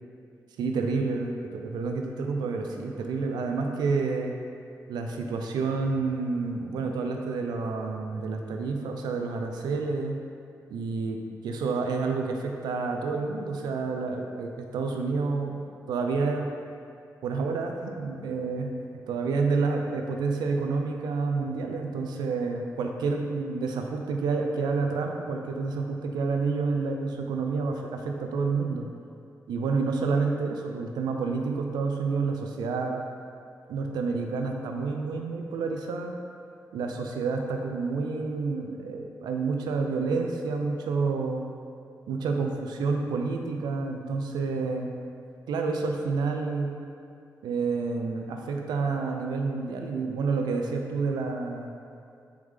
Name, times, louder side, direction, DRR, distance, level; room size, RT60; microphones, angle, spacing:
voice 1, 0.6-4.3 4.9-10.2 10.7-11.2 11.4-15.6 15.9-16.5 17.2-18.7 19.1-28.9 29.5-33.0 33.7-36.1 36.7-41.4 42.1-44.9 45.5-46.7 47.4-51.7, right 4 dB, 90° right, 3 dB, 0.4 m, -29 dB
3.9 x 3.5 x 3.2 m, 2.4 s
supercardioid pair, 50°, 7 cm